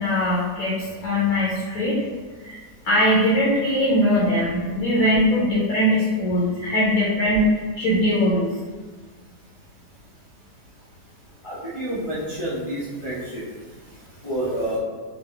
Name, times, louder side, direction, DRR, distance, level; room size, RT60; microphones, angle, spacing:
voice 1, 0.0-2.0 2.4-2.6 2.8-8.5, left 1 dB, 65° left, -6 dB, 1.1 m, -21 dB
voice 2, 11.4-13.4 14.2-14.8, right 1 dB, 40° left, -10 dB, 0.4 m, -28 dB
3.7 x 2.1 x 3.7 m, 1.4 s
omnidirectional pair, 1.8 m